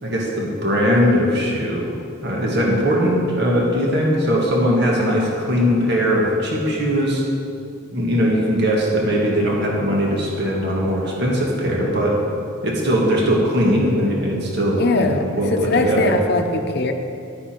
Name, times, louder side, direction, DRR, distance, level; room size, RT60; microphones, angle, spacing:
voice 1, 0.0-1.9 2.2-7.2 7.9-12.2 12.6-16.1, equal, 50° right, -2 dB, 1.8 m, -20 dB
voice 2, 14.7-16.9, left 3 dB, 50° left, 5 dB, 0.8 m, -21 dB
11.5 x 9.4 x 4.5 m, 2.6 s
head